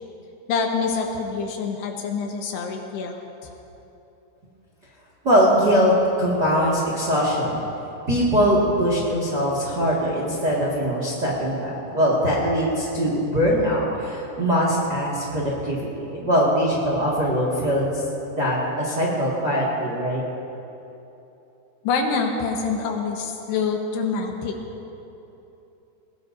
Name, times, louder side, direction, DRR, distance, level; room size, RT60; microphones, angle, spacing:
voice 1, 0.5-3.2 21.8-24.5, left 5 dB, 75° left, 2 dB, 3.2 m, -26 dB
voice 2, 5.2-7.6 8.1-18.0 18.3-20.2, equal, 40° right, -5 dB, 1.6 m, -22 dB
21.0 x 20.0 x 2.7 m, 3.0 s
omnidirectional pair, 5.0 m